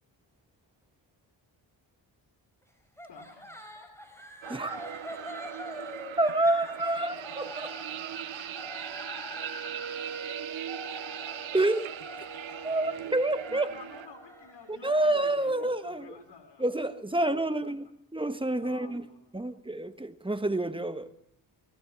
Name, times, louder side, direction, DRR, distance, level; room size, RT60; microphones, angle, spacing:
sound 1, 3.0-16.1, left 1 dB, 5° left, 5.1 m, -45 dB
voice 1, 3.1-3.5 13.5-16.6 17.1-17.8 18.6-19.5, left 5 dB, 65° left, 3.7 m, -50 dB
sound 2, 4.4-14.1, right 12 dB, 85° right, 0.9 m, -40 dB
voice 2, 4.5-4.8 6.2-7.7 11.5-11.9 12.6-13.7 14.7-16.2 16.6-19.0 19.3-21.1, right 2 dB, 10° right, 1.4 m, -28 dB
Wind instrument woodwind instrument, 9.3-16.0, right 6 dB, 40° right, 2.7 m, -45 dB
18.5 x 16.0 x 8.8 m
cardioid pair, 85°, 46 cm